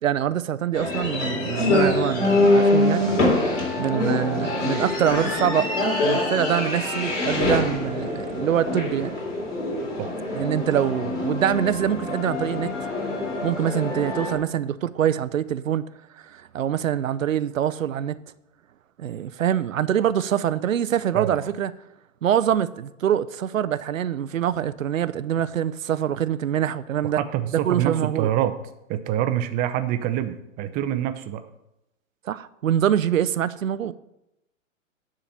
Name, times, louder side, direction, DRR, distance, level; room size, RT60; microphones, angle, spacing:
voice 1, 0.0-3.1 3.8-5.7 6.0-9.2 10.3-12.7 13.4-15.9 16.2-18.2 19.0-21.7 22.2-27.2 27.5-28.3 32.3-33.9, right 10 dB, 80° right, 0.6 m, -24 dB
sound 1, 0.7-14.4, left 2 dB, 65° left, 3.5 m, -24 dB
voice 2, 3.0-3.3 3.8-3.9 10.0-10.1 21.1-21.5 27.0-28.5 28.9-31.4, right 11 dB, 20° right, 0.6 m, -26 dB
10.0 x 3.9 x 7.3 m
hypercardioid pair, 120°, 39 cm